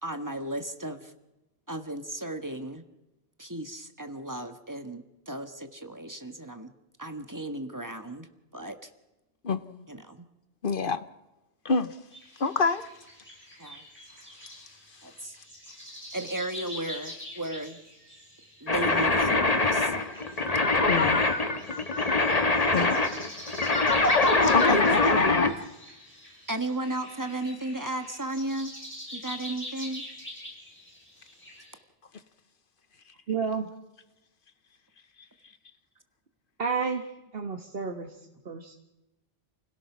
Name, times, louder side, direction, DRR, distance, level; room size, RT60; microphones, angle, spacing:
voice 1, 0.0-1.1 1.7-2.8 3.4-6.7 7.0-8.3 8.5-8.9 9.9-10.3 13.6-13.8 15.0-15.3 16.1-17.8 18.6-19.9 20.9-21.0 25.5-25.6 26.5-28.7 29.1-30.0, right 1 dB, 20° right, 7 dB, 1.5 m, -35 dB
voice 2, 9.4-9.8 10.6-11.0 11.6-11.9 12.4-12.9 20.9-21.2 22.7-23.0 23.4-23.5 24.5-24.8, left 4 dB, 60° left, 12 dB, 1.2 m, -27 dB
sound 1, 12.1-31.8, left 1 dB, 10° left, 7.0 m, -45 dB
sound 2, 18.7-25.5, left 3 dB, 40° left, 1.5 m, -23 dB
voice 3, 33.3-33.7 36.6-38.1 38.4-38.8, right 5 dB, 65° right, 4 dB, 1.6 m, -31 dB
29.5 x 17.0 x 6.1 m, 0.99 s
omnidirectional pair, 1.0 m